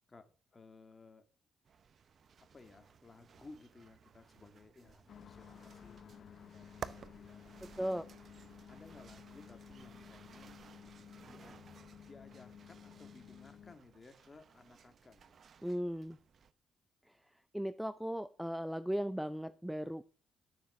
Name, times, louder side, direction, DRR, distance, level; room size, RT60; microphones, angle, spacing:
voice 1, 0.1-1.2 2.4-8.1 8.5-10.6 11.3-11.6 11.9-15.4, left 3 dB, 30° left, 2.2 m, -58 dB
sound 1, 1.6-16.5, right 7 dB, 50° right, 0.8 m, -55 dB
sound 2, 5.1-13.8, left 8 dB, 55° left, 0.9 m, -55 dB
voice 2, 7.6-8.1 15.6-16.2 17.5-20.0, equal, 5° right, 0.6 m, -37 dB
12.0 x 7.1 x 6.2 m
cardioid pair, 90°, 0 cm